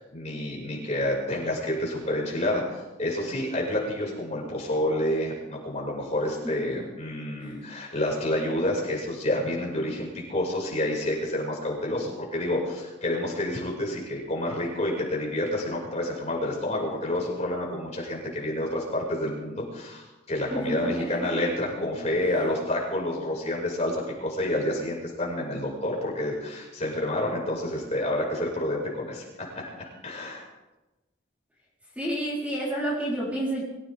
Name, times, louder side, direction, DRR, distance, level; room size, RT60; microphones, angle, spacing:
voice 1, 0.0-29.7 30.0-30.4, left 1 dB, 35° left, -2 dB, 5.6 m, -29 dB
voice 2, 20.5-21.0 32.0-33.6, right 1 dB, 5° right, -6 dB, 4.0 m, -29 dB
24.5 x 15.5 x 3.6 m, 1.1 s
head